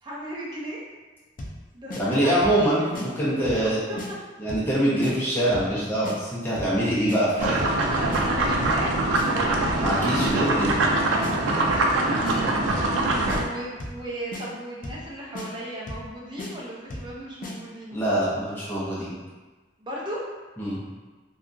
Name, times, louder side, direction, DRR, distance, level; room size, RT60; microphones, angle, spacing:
voice 1, 0.0-0.8 1.7-2.7 3.5-4.0 8.0-10.2 12.1-12.9 13.3-18.0 19.8-20.3, right 1 dB, 25° right, -5 dB, 0.5 m, -36 dB
sound 1, 1.4-1.6 1.9-2.0 2.4-2.6 2.9-3.1 3.4-3.7 4.0-4.1 4.5-4.7 5.0-5.1 5.5-5.7 6.0-6.2 6.6-6.8 7.1-7.2 7.6-7.8 8.1-8.2 8.6-8.8 9.1-9.3 9.7-9.9 10.2-10.3 10.7-10.9 11.2-11.3 11.7-11.9 12.2-12.4 12.8-13.0 13.3-13.4 13.8-14.0 14.3-14.4 14.8-15.1 15.3-15.5 15.9-16.1 16.4-16.5 16.9-17.1 17.4-17.5, left 2 dB, 45° left, 0.4 m, -35 dB
voice 2, 1.9-3.8 4.4-7.6 9.8-10.8 17.9-19.1 20.6-20.8, right 1 dB, 10° left, -9 dB, 0.7 m, -24 dB
sound 2, 7.4-13.4, right 2 dB, 85° right, 0.4 m, -23 dB
2.8 x 2.3 x 2.5 m, 1.3 s
head